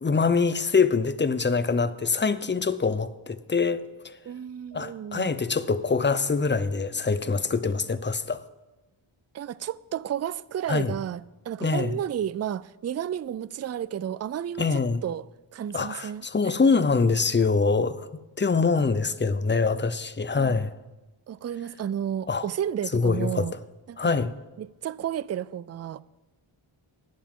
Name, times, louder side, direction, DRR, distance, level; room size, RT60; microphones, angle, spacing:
voice 1, 0.0-4.1 4.7-8.4 10.7-10.9 11.6-12.0 14.6-15.0 15.7-18.1 18.4-20.7 22.3-22.5 22.9-23.5 24.0-24.3, left 4 dB, 20° left, 0.6 m, -24 dB
voice 2, 4.2-5.3 9.3-15.2 15.5-16.5 20.4-20.5 21.3-23.6 23.9-24.1 24.6-26.0, right 10 dB, 35° right, 0.4 m, -32 dB
19.0 x 7.2 x 3.7 m
cardioid pair, 60°, 49 cm